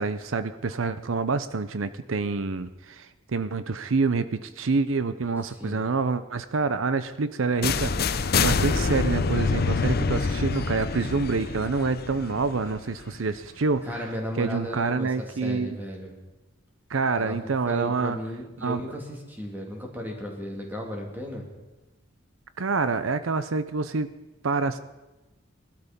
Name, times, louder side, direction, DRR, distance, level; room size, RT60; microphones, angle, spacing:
voice 1, 0.0-14.0 14.4-15.8 16.9-18.2 18.6-18.8 22.6-24.1 24.4-24.8, right 4 dB, 85° right, 13 dB, 0.7 m, -27 dB
voice 2, 5.4-5.8 13.8-16.1 17.1-21.4, equal, 10° right, 0 dB, 2.8 m, -35 dB
sound 1, 7.6-13.5, left 4 dB, 50° left, 0.6 m, -26 dB
19.5 x 12.5 x 5.3 m, 1.1 s
head